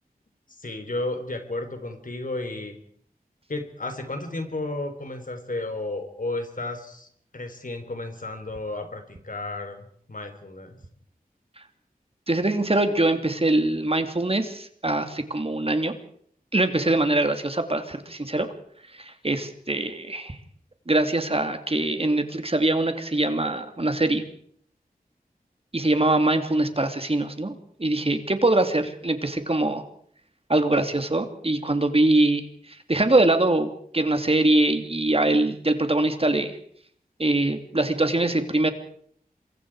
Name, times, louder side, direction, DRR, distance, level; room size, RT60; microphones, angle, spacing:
voice 1, 0.6-2.8 3.5-7.1 7.3-10.8, left 2 dB, 60° left, 7 dB, 3.8 m, -33 dB
voice 2, 12.3-15.9 16.5-18.5 19.0-20.4 20.9-24.2 25.7-29.8 30.5-36.6 37.2-38.7, right 2 dB, 40° right, 7 dB, 2.7 m, -23 dB
27.0 x 23.0 x 4.8 m, 0.62 s
wide cardioid pair, 50°, 16 cm